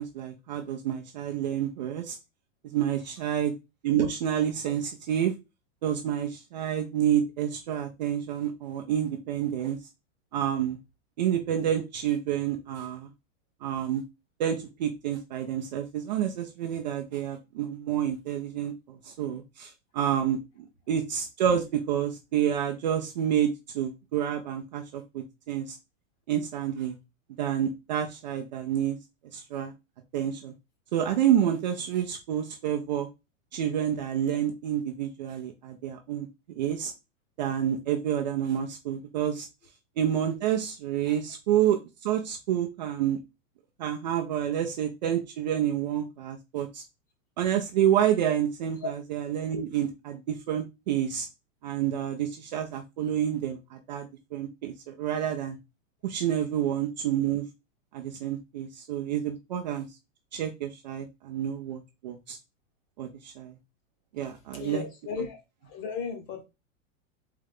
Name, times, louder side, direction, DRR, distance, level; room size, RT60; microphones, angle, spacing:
voice 1, 0.0-2.2 2.7-3.5 3.8-5.3 5.8-9.8 10.3-10.8 11.2-13.1 13.6-14.0 14.4-25.8 26.3-26.9 27.4-29.0 29.3-29.7 30.1-30.5 30.9-33.1 33.5-36.3 36.6-36.9 37.4-39.5 40.0-43.2 43.8-46.8 47.4-51.3 51.6-55.6 56.0-57.5 57.9-59.9 60.3-62.4 63.0-63.5 64.1-64.8, right 10 dB, 35° right, 0.4 m, -29 dB
voice 2, 64.5-65.4 65.6-66.4, left 5 dB, 35° left, 1.2 m, -35 dB
3.8 x 3.3 x 3.5 m
supercardioid pair, 165°, 40 cm